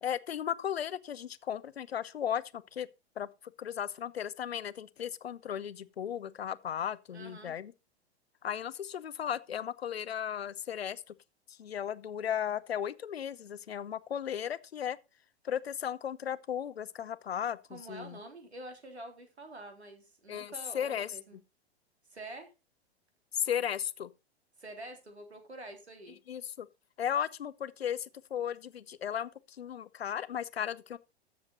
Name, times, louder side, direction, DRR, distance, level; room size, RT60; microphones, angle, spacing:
voice 1, 0.0-2.9 3.2-3.3 3.6-7.7 8.4-11.2 11.5-15.0 15.4-18.2 20.3-21.1 23.3-24.1 26.3-26.7 27.0-31.0, left 9 dB, 65° left, 0.8 m, -35 dB
voice 2, 7.1-7.6 17.7-21.4 22.1-22.5 24.6-26.2, right 1 dB, 80° right, 3.6 m, -47 dB
13.5 x 7.4 x 4.1 m
figure-of-eight pair, 100°, 33 cm